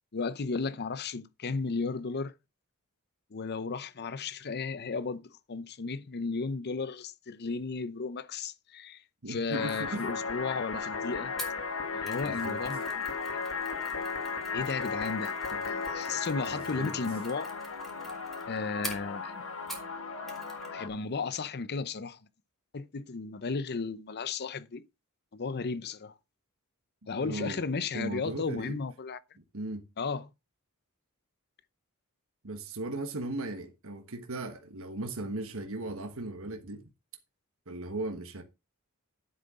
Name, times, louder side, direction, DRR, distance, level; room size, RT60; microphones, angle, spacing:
voice 1, 0.1-2.3 3.3-9.0 9.3-11.3 11.9-13.1 14.5-15.4 15.6-17.5 18.5-19.4 20.7-22.2 22.7-24.9 25.3-26.1 27.1-29.2 30.0-30.3, left 4 dB, 50° left, 0.7 m, -34 dB
voice 2, 9.2-10.0 12.2-12.6 15.5-15.6 16.5-16.9 27.2-27.6 27.9-28.8 29.5-29.8 32.4-36.9 37.7-38.4, right 2 dB, 70° right, 1.4 m, -37 dB
sound 1, 9.5-20.9, left 5 dB, 70° left, 1.8 m, -35 dB
Mechanisms, 11.4-20.0 20.3-20.7 21.0-21.1, right 1 dB, ahead, 3.1 m, -47 dB
10.5 x 8.0 x 3.7 m
head